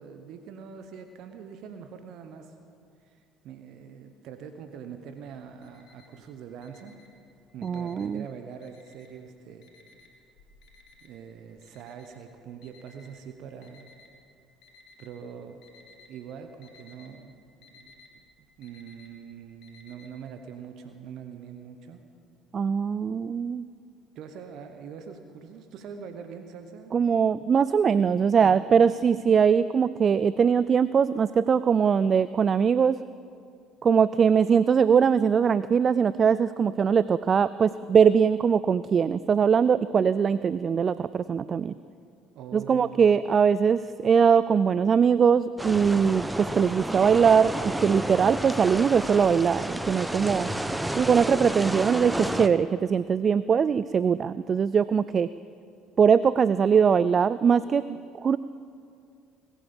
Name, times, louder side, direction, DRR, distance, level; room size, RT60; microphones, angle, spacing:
voice 1, 0.0-2.5 3.0-3.2 3.4-7.0 7.5-9.7 11.0-13.9 15.0-15.6 16.1-17.4 17.7-22.0 24.1-26.9 28.4-28.9 42.3-43.1 50.5-51.1, right 7 dB, 60° right, 7 dB, 1.0 m, -43 dB
Alarm, 5.3-6.2 6.6-8.2 8.6-9.3 9.6-14.1 14.6-15.2 15.5-16.1 16.4-20.1, left 3 dB, 65° left, 2.6 m, -56 dB
voice 2, 7.6-8.2 22.5-23.7 26.9-33.0 33.8-41.8 42.5-50.5 51.0-55.3 56.0-58.4, right 6 dB, 40° right, 16 dB, 0.3 m, -21 dB
sound 1, 45.6-52.5, right 1 dB, 10° right, 0.9 m, -31 dB
21.0 x 9.1 x 7.1 m, 2.4 s
hypercardioid pair, 60°, 0 cm